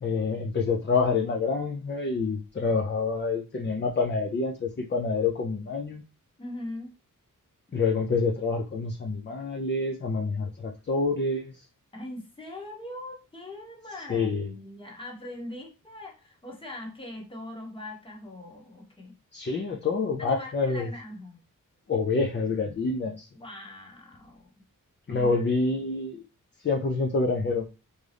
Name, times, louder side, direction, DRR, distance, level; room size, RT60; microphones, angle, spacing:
voice 1, 0.0-6.0 7.7-11.5 14.1-14.5 19.3-20.9 21.9-23.3 25.1-26.2 26.6-27.6, left 4 dB, 35° left, 2 dB, 0.4 m, -27 dB
voice 2, 6.4-6.9 11.9-19.1 20.2-21.4 23.3-24.5 25.0-25.8, left 1 dB, 15° left, 0 dB, 0.9 m, -41 dB
3.6 x 2.6 x 3.3 m, 0.29 s
wide cardioid pair, 160°, 33 cm